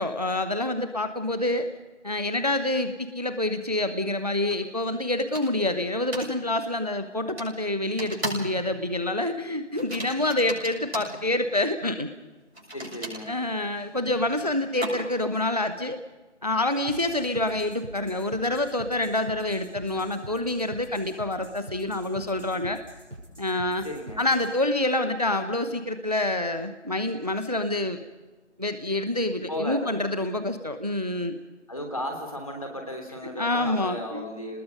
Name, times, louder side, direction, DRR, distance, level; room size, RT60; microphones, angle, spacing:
voice 1, 0.0-1.7 2.0-12.1 13.3-16.0 16.4-22.8 23.4-23.9 24.2-28.0 28.6-31.4 33.4-34.2, left 1 dB, 35° right, 10 dB, 0.8 m, -27 dB
sound 1, 4.5-4.6 5.3-5.7 6.1-6.3 7.4-7.5 8.0-8.6 8.8-9.1 9.7-11.2 12.5-15.3, right 1 dB, 60° right, 7.3 m, -36 dB
voice 2, 12.7-13.3 23.8-24.2 29.5-29.9 31.7-34.6, equal, 30° left, 2 dB, 3.1 m, -34 dB
sound 2, 16.9-24.5, right 1 dB, 90° right, 6.2 m, -44 dB
29.0 x 20.0 x 5.2 m, 1.3 s
figure-of-eight pair, 180°, 36 cm